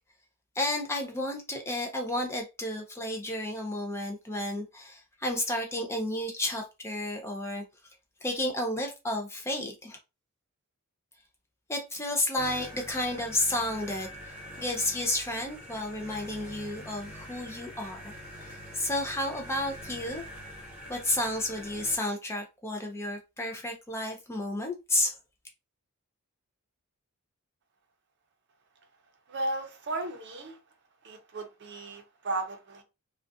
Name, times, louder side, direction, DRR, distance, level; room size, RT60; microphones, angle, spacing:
voice 1, 0.6-7.6 8.2-10.0 11.7-18.1 18.4-20.2 20.9-25.2, left 1 dB, 10° left, 0.4 m, -32 dB
sound 1, 12.4-22.0, equal, 10° right, 1.0 m, -45 dB
voice 2, 29.3-30.6 31.0-32.8, right 2 dB, 50° right, 0.6 m, -35 dB
2.3 x 2.2 x 2.6 m
head